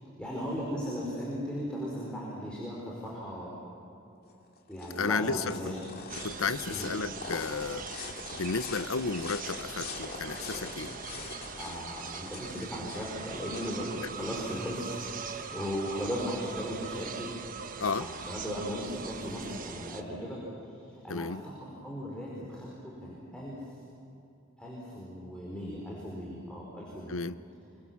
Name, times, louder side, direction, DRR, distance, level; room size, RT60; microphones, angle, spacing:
voice 1, 0.2-3.5 4.7-5.8 6.7-6.9 11.6-17.3 17.8-20.4 20.7-21.3 21.6-23.6 24.6-27.2, equal, 5° left, -5 dB, 4.6 m, -37 dB
sound 1, 4.3-15.2, left 4 dB, 50° left, 2.3 m, -43 dB
voice 2, 5.0-5.6 6.2-7.8 8.3-10.9 17.8-18.1 21.1-21.4 27.1-27.4, left 4 dB, 80° left, 14 dB, 0.8 m, -32 dB
sound 2, 6.1-20.0, right 6 dB, 40° right, 1.2 m, -42 dB
27.5 x 23.5 x 7.3 m, 2.8 s
head